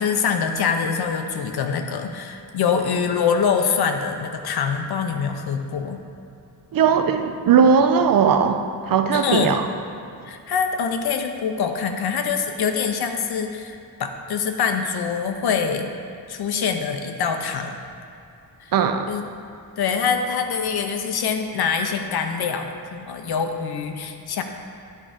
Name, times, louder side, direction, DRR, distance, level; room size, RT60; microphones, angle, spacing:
voice 1, 0.0-6.0 9.1-9.6 10.2-15.9 16.3-17.8 18.6-18.7 19.1-19.2 19.8-24.4, left 6 dB, 70° left, 5 dB, 0.7 m, -24 dB
voice 2, 6.7-9.7 18.7-19.1, right 6 dB, 60° right, 7 dB, 0.5 m, -18 dB
10.0 x 3.7 x 5.0 m, 2.7 s
wide cardioid pair, 155°, 40 cm